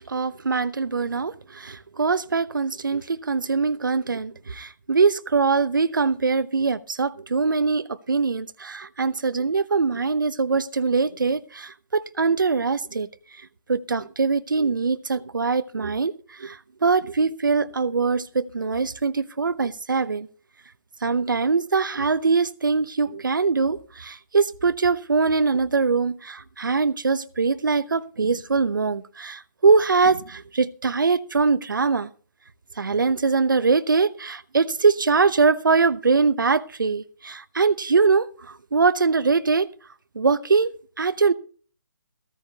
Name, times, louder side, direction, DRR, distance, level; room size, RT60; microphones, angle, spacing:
voice 1, 0.1-13.1 13.7-20.3 21.0-32.1 32.8-39.7 40.1-41.3, right 4 dB, 80° right, 0.9 m, -22 dB
15.5 x 14.0 x 2.8 m
figure-of-eight pair, 150°, 11 cm